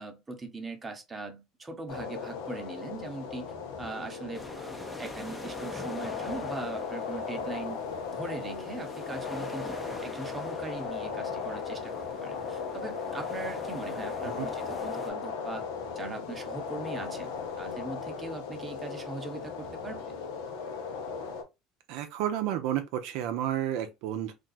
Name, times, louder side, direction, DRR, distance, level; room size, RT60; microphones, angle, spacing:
voice 1, 0.0-3.4 3.8-7.8 8.1-12.0 12.2-15.6 15.9-17.3 17.6-20.0, right 3 dB, 20° right, 0.9 m, -40 dB
sound 1, 1.9-21.4, left 5 dB, 85° left, 0.7 m, -37 dB
sound 2, 4.3-15.1, left 1 dB, 10° left, 0.6 m, -46 dB
voice 2, 21.9-24.3, right 11 dB, 75° right, 0.6 m, -31 dB
2.6 x 2.3 x 3.9 m
supercardioid pair, 95°, 0 cm